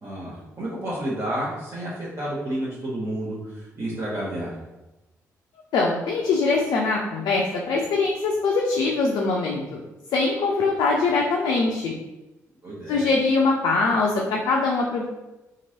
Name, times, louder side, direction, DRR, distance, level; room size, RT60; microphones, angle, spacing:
voice 1, 0.0-4.6 12.6-13.1, right 1 dB, 35° right, -8 dB, 0.9 m, -30 dB
voice 2, 5.7-9.8 10.1-11.9 12.9-15.1, left 3 dB, 55° left, -1 dB, 0.4 m, -22 dB
2.9 x 2.5 x 2.7 m, 1.0 s
figure-of-eight pair, 40°, 8 cm